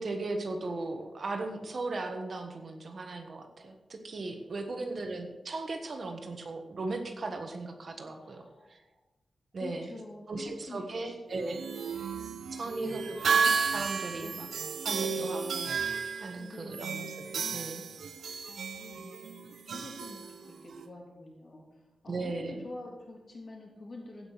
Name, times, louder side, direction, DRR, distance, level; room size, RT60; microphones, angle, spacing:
voice 1, 0.0-8.8 9.5-9.9 10.3-11.6 12.6-14.5 14.8-15.7 16.2-17.8 22.1-22.6, right 2 dB, 50° right, 5 dB, 1.4 m, -37 dB
voice 2, 4.7-5.3 8.2-9.0 9.6-11.2 11.5-12.1 12.6-13.0 14.1-14.5 16.4-17.0 18.2-24.3, left 2 dB, 45° left, -1 dB, 3.5 m, -47 dB
sound 1, 11.3-20.9, right 5 dB, 85° right, 0.8 m, -33 dB
15.5 x 5.8 x 6.5 m, 1.1 s
wide cardioid pair, 130°, 0 cm